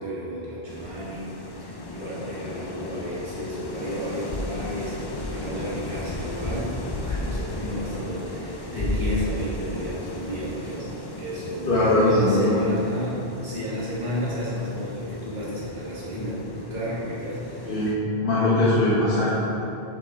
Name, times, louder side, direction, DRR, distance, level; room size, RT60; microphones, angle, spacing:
voice 1, 0.0-1.3 1.6-10.9 11.2-17.8 18.7-18.8, equal, 45° right, -9 dB, 2.0 m, -32 dB
sound 1, 0.7-18.0, left 1 dB, 40° left, 0.4 m, -35 dB
voice 2, 11.7-12.5 17.6-19.3, left 1 dB, 55° left, -9 dB, 1.4 m, -20 dB
7.5 x 5.4 x 3.7 m, 2.9 s
omnidirectional pair, 1.1 m